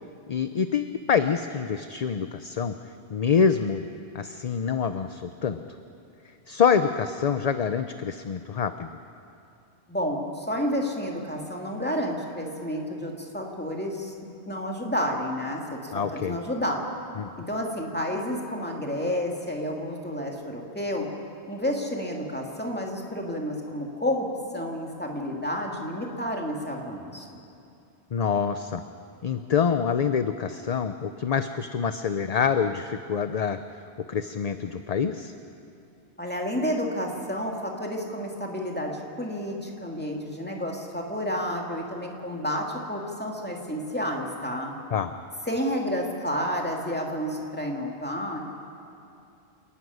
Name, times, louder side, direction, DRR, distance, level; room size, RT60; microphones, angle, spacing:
voice 1, 0.3-2.7 3.1-3.8 4.1-5.6 6.5-9.0 15.9-16.4 17.2-17.3 28.1-28.8 29.2-33.6 34.1-35.3 44.9-45.1, left 6 dB, 45° left, 9 dB, 0.6 m, -26 dB
voice 2, 9.9-16.9 17.4-21.0 21.5-24.3 24.5-27.4 36.2-44.7 45.5-48.4, equal, 10° left, 0 dB, 2.4 m, -30 dB
28.5 x 11.5 x 9.4 m, 2.6 s
omnidirectional pair, 1.1 m